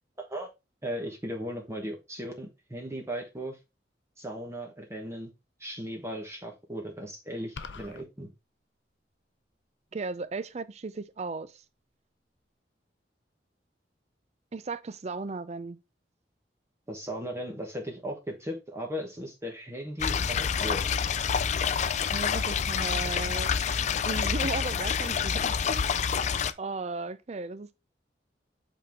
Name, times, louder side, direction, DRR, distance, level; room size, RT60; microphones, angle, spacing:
voice 1, 0.2-0.5 0.8-3.6 4.2-5.3 5.6-8.3 16.9-20.9, equal, 15° right, 1.1 m, -37 dB
sound 1, 7.6-8.0, left 4 dB, 80° left, 0.7 m, -41 dB
voice 2, 9.9-11.6 14.5-15.8 22.1-23.5 24.0-25.8 26.6-27.8, right 3 dB, 40° right, 0.5 m, -36 dB
sound 2, 20.0-26.5, left 7 dB, 40° left, 0.4 m, -28 dB
8.3 x 3.7 x 3.5 m
head